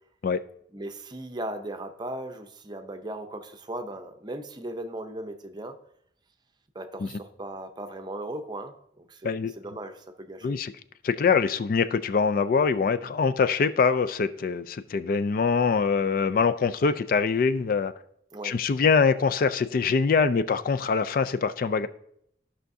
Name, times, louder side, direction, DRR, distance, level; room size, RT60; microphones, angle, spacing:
voice 1, 0.7-5.7 6.7-10.6 18.3-18.6, right 1 dB, 25° right, 6 dB, 0.6 m, -37 dB
voice 2, 11.0-17.9 18.4-21.9, left 5 dB, 50° left, 12 dB, 0.3 m, -24 dB
14.0 x 5.6 x 2.7 m, 0.71 s
head